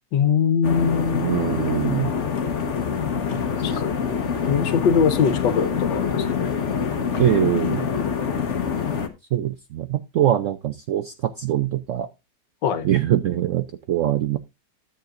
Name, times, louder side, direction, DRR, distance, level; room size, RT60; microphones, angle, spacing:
voice 1, 0.1-1.3 3.6-4.2 4.5-6.5 12.6-12.9, left 7 dB, 80° left, 1.6 m, -22 dB
sound 1, 0.6-9.1, left 6 dB, 45° left, 1.2 m, -25 dB
voice 2, 1.2-2.1 3.3-3.8 4.3-4.5 7.2-7.9 9.3-12.1 12.8-14.4, right 11 dB, 75° right, 0.7 m, -23 dB
13.0 x 7.8 x 2.5 m
omnidirectional pair, 2.0 m